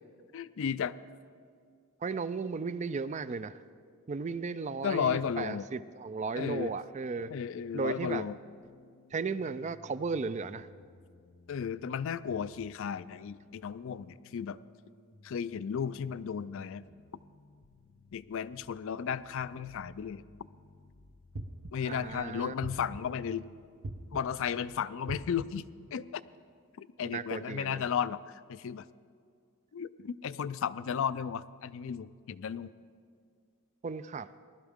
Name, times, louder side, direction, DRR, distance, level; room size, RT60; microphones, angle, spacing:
voice 1, 0.3-0.9 4.8-5.7 6.4-6.7 7.3-8.4 11.5-14.6 15.2-16.8 18.1-20.2 21.7-23.5 24.1-25.6 25.9-26.2 26.8-28.9 29.7-32.7, left 7 dB, 65° left, 16 dB, 0.4 m, -34 dB
voice 2, 2.0-3.6 4.1-7.3 7.7-8.3 9.1-10.7 21.8-22.5 27.0-27.8 33.8-34.3, right 4 dB, 35° right, 14 dB, 0.3 m, -35 dB
sound 1, 7.9-24.8, left 2 dB, 80° left, 0.7 m, -60 dB
sound 2, 21.3-22.0 22.6-23.3 23.8-24.5 25.1-25.7, right 2 dB, 65° right, 0.7 m, -42 dB
19.0 x 12.5 x 3.6 m, 2.2 s
head